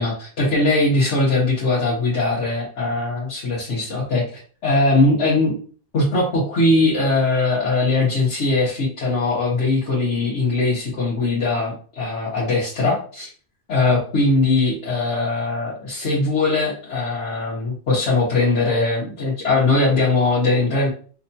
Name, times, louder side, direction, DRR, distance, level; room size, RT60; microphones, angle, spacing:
voice 1, 0.0-5.6 5.9-13.3 13.7-20.9, left 2 dB, 80° left, -8 dB, 1.5 m, -20 dB
5.6 x 2.3 x 2.7 m, 0.42 s
omnidirectional pair, 1.2 m